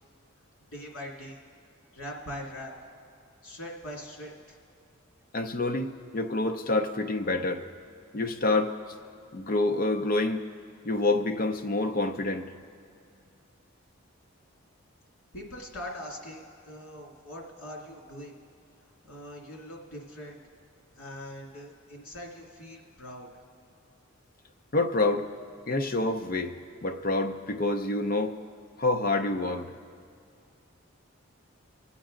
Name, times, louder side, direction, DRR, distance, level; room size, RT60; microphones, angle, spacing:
voice 1, 0.7-1.4 1.9-2.7 3.4-4.6 15.3-18.4 19.0-20.4 20.9-23.4, left 1 dB, 80° left, -1 dB, 2.3 m, -42 dB
voice 2, 5.3-7.6 8.1-8.7 9.3-10.4 10.8-12.5 24.7-25.3 25.7-26.5 26.8-28.3 28.8-29.7, left 2 dB, 45° left, 5 dB, 0.6 m, -27 dB
23.5 x 8.4 x 3.8 m, 2.4 s
head